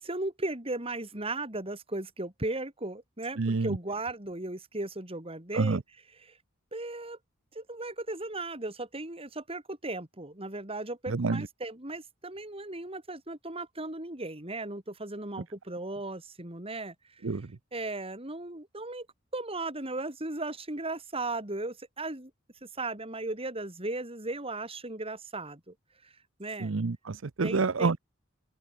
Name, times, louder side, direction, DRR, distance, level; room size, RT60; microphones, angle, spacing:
voice 1, 0.0-5.8 6.1-6.3 6.7-7.2 7.5-16.9 17.7-19.1 19.3-22.3 22.6-25.7 26.0-26.1 26.4-26.7 27.4-27.9, right 2 dB, 30° right, 4.5 m, -36 dB
voice 2, 3.4-3.8 5.5-5.8 11.1-11.4 17.2-17.4 26.6-28.0, right 4 dB, 70° right, 0.7 m, -28 dB
open air
head